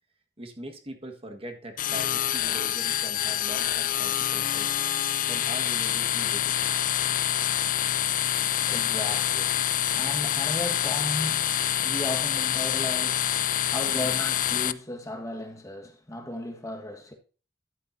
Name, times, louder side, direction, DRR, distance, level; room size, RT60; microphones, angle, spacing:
voice 1, 0.4-4.7 5.3-6.7 13.9-14.1, right 1 dB, 35° right, 1.6 m, -41 dB
sound 1, 1.8-14.7, left 11 dB, 50° left, 0.5 m, -26 dB
voice 2, 8.4-9.7 9.9-17.1, left 1 dB, 20° left, 1.5 m, -36 dB
12.5 x 9.0 x 2.7 m
head